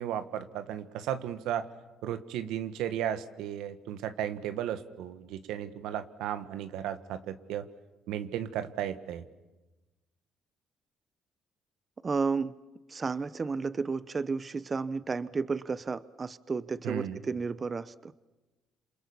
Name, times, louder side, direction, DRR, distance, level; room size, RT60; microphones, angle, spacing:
voice 1, 0.0-1.7 2.0-7.7 8.1-9.2 16.8-17.2, right 10 dB, 90° right, 11 dB, 1.6 m, -35 dB
voice 2, 12.0-12.5 12.9-18.1, right 4 dB, 30° right, 16 dB, 0.8 m, -32 dB
28.0 x 27.5 x 7.2 m, 1.1 s
cardioid pair, 100°, 0 cm